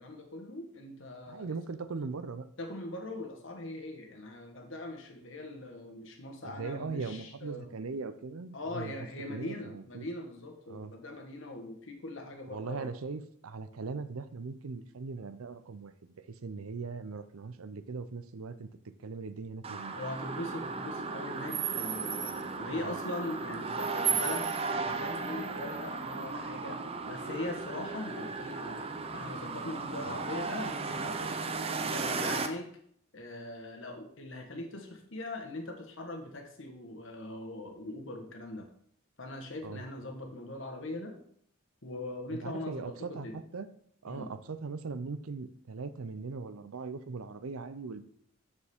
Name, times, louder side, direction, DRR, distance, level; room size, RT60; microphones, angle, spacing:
voice 1, 0.0-1.5 2.6-7.7 8.5-12.9 20.0-26.8 27.1-31.4 31.8-32.7 33.1-38.7 39.2-41.1 41.8-43.4 44.1-44.3, left 2 dB, 60° left, 4 dB, 1.3 m, -41 dB
voice 2, 1.3-2.4 6.4-8.9 9.3-10.1 10.7-10.9 12.5-18.7 19.0-20.0 22.8-22.9 30.0-30.2 39.6-39.8 42.3-43.7 44.0-48.0, right 4 dB, 85° right, 12 dB, 0.6 m, -40 dB
sound 1, 19.6-32.5, right 4 dB, 25° right, 0.5 m, -35 dB
7.0 x 6.7 x 3.6 m, 0.66 s
head